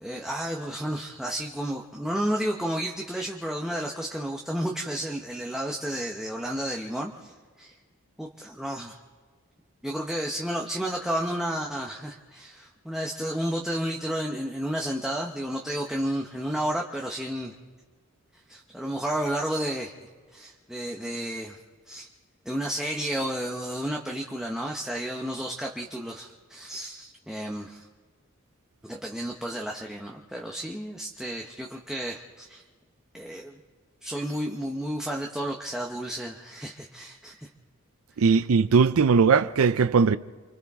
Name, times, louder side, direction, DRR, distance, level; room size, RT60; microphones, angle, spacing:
voice 1, 0.0-7.7 8.2-9.0 9.8-17.5 18.5-19.9 20.3-21.6 21.9-22.1 22.4-27.9 28.8-32.6 33.1-33.6 34.0-37.5, right 1 dB, 5° right, 0.9 m, -32 dB
voice 2, 38.2-40.2, right 5 dB, 85° right, 0.5 m, -19 dB
29.5 x 24.5 x 3.6 m
head